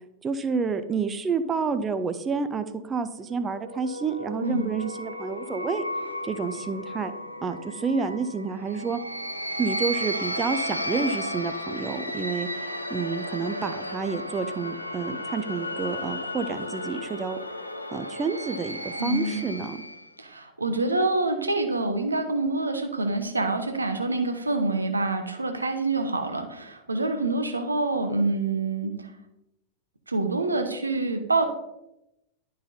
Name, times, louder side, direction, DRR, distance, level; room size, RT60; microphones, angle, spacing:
voice 1, 0.2-5.8 6.2-7.1 7.4-9.0 9.6-12.5 12.9-17.4 17.9-19.8, right 5 dB, 20° right, 9 dB, 0.5 m, -29 dB
sound 1, 3.3-20.1, equal, 85° left, 0.5 m, -34 dB
voice 2, 19.0-19.4 20.2-29.1 30.1-31.5, right 2 dB, 80° right, 5 dB, 0.8 m, -26 dB
11.5 x 3.9 x 2.7 m, 0.87 s
figure-of-eight pair, 90°, 0 cm